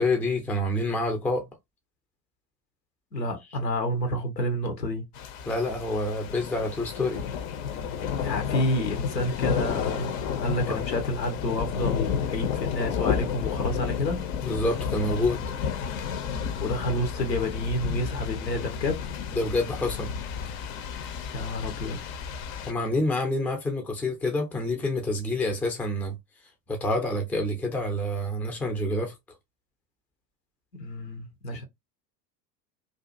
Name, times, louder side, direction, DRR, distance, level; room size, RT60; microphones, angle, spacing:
voice 1, 0.0-1.5 5.4-7.2 10.7-10.8 14.4-15.4 19.3-20.1 22.7-26.1 26.7-29.1, left 1 dB, 5° left, 0.4 m, -27 dB
voice 2, 3.1-5.0 8.2-14.2 16.6-19.0 21.3-22.0 30.7-31.6, left 1 dB, 85° left, 0.9 m, -29 dB
sound 1, 5.1-22.7, left 7 dB, 55° left, 0.6 m, -31 dB
2.6 x 2.4 x 2.4 m
figure-of-eight pair, 75°, 49 cm